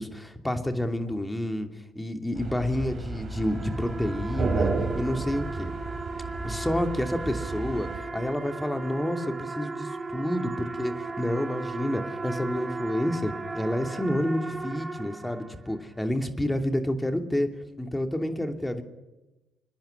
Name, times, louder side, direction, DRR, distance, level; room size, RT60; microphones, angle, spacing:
voice 1, 0.0-1.7 1.9-5.7 6.4-17.5 17.8-18.8, left 1 dB, 10° left, 5 dB, 2.9 m, -29 dB
sound 1, 2.3-8.0, right 3 dB, 50° right, 4.6 m, -32 dB
sound 2, 3.1-15.9, right 3 dB, 25° right, 2.6 m, -36 dB
27.5 x 10.5 x 10.0 m, 1.1 s
supercardioid pair, 55°, 0 cm